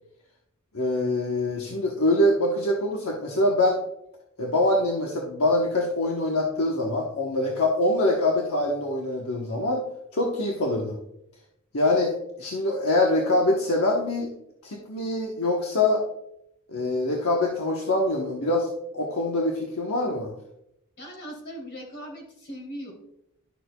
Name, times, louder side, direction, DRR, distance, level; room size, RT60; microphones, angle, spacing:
voice 1, 0.7-3.8 4.4-9.8 10.1-11.0 11.7-14.3 14.6-16.0 16.7-18.7 18.9-20.3, left 1 dB, 80° left, -1 dB, 1.1 m, -24 dB
voice 2, 21.0-22.9, equal, 55° left, 0 dB, 3.0 m, -39 dB
11.5 x 6.7 x 2.3 m, 0.79 s
head